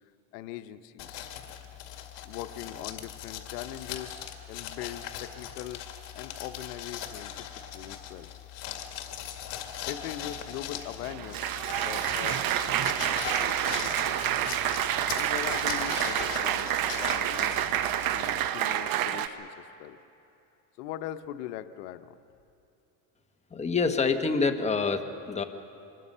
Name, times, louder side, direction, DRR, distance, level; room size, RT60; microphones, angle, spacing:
voice 1, 0.3-1.2 2.2-5.8 6.1-8.3 9.9-14.0 15.1-17.6 18.1-20.0 20.8-22.2, left 12 dB, 85° left, 11 dB, 0.9 m, -41 dB
sound 1, 1.0-18.5, left 9 dB, 65° left, 2.1 m, -40 dB
Applause, 10.8-19.3, right 11 dB, 50° right, 1.0 m, -28 dB
voice 2, 23.5-25.4, left 4 dB, 15° left, 6 dB, 1.2 m, -26 dB
25.0 x 20.5 x 5.5 m, 2.7 s
supercardioid pair, 120°, 46 cm